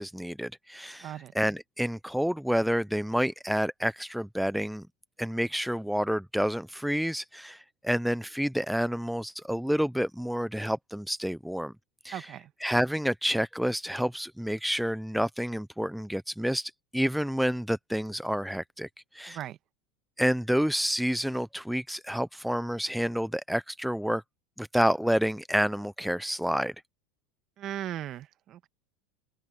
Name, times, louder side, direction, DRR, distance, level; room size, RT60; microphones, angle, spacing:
voice 1, 0.0-4.9 5.2-11.7 12.0-12.3 12.6-18.9 19.1-19.4 20.2-24.2 24.6-26.7, equal, ahead, 0.5 m, -29 dB
voice 2, 1.0-1.3 12.1-12.5 19.3-19.6 27.6-28.7, right 12 dB, 45° right, 1.4 m, -38 dB
open air
supercardioid pair, 105°, 0 cm